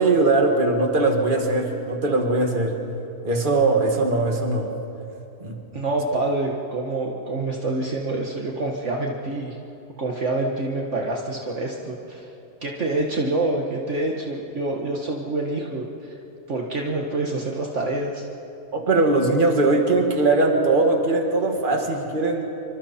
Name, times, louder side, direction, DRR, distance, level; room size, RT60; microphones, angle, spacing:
voice 1, 0.0-2.7 3.2-4.7 5.4-5.6 18.7-22.4, right 2 dB, 35° right, 2 dB, 2.2 m, -20 dB
voice 2, 5.7-9.6 10.0-12.3 12.6-16.1 16.5-18.3, right 2 dB, 55° right, -1 dB, 1.8 m, -26 dB
27.5 x 24.5 x 4.4 m, 2.9 s
omnidirectional pair, 1.5 m